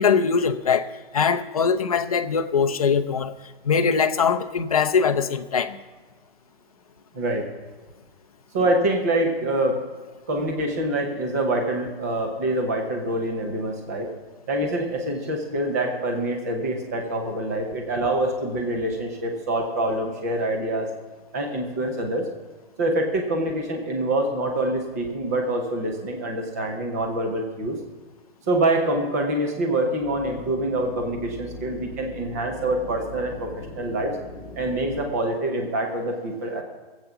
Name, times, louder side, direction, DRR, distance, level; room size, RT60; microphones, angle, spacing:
voice 1, 0.0-3.3 3.6-5.8, left 6 dB, 35° left, 0.5 m, -22 dB
voice 2, 8.5-9.8 10.3-14.1 14.5-20.9 21.3-22.2 22.8-27.8 28.5-33.5 33.8-34.1 34.6-36.6, right 1 dB, 15° right, 0.8 m, -25 dB
sound 1, 30.0-35.1, left 1 dB, 5° left, 5.8 m, -41 dB
18.5 x 8.2 x 5.8 m
hypercardioid pair, 180°, 31 cm